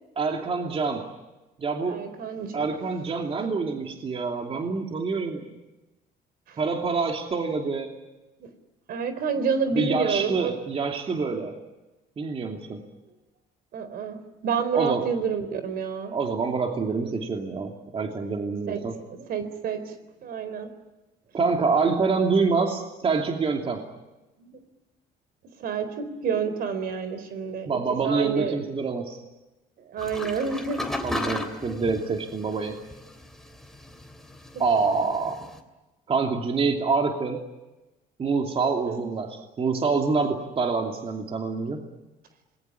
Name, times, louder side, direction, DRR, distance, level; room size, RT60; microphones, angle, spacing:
voice 1, 0.2-1.0 1.6-2.0 2.5-5.4 6.6-8.0 9.7-11.5 12.2-12.8 14.7-15.1 16.1-19.0 21.3-23.9 27.7-29.2 31.0-32.8 34.6-35.4 36.1-37.4 38.2-41.8, right 4 dB, 35° right, 2 dB, 2.8 m, -26 dB
voice 2, 1.9-2.7 6.5-6.6 8.4-8.5 8.9-10.5 13.7-14.2 14.4-16.1 18.7-18.8 19.1-19.9 20.2-20.7 24.4-24.6 25.6-27.8 28.0-28.6 29.9-30.9 31.2-31.4 38.9-39.0, right 6 dB, 65° right, 11 dB, 4.0 m, -29 dB
sound 1, 30.0-35.6, left 1 dB, ahead, 3.3 m, -36 dB
27.0 x 21.0 x 9.7 m, 1.1 s
cardioid pair, 110°, 17 cm